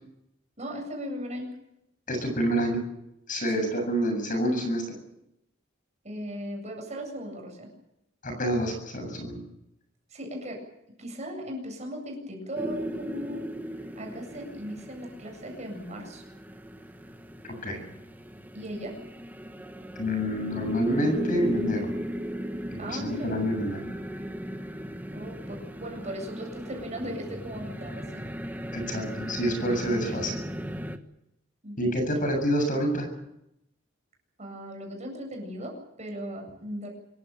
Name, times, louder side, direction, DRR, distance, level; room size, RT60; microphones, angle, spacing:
voice 1, 0.6-1.5 6.0-7.7 10.1-10.6 11.0-13.5 13.9-16.2 18.5-19.0 22.8-23.3 25.1-28.2 31.6-31.9 34.4-36.9, equal, 35° right, 2 dB, 7.9 m, -37 dB
voice 2, 2.1-2.8 3.3-4.8 8.2-9.4 17.6-17.8 20.0-21.9 22.7-23.8 28.7-30.4 31.8-33.1, equal, 45° left, 5 dB, 7.6 m, -27 dB
sound 1, 12.5-31.0, equal, 10° right, 1.5 m, -37 dB
26.5 x 15.0 x 9.1 m, 0.84 s
head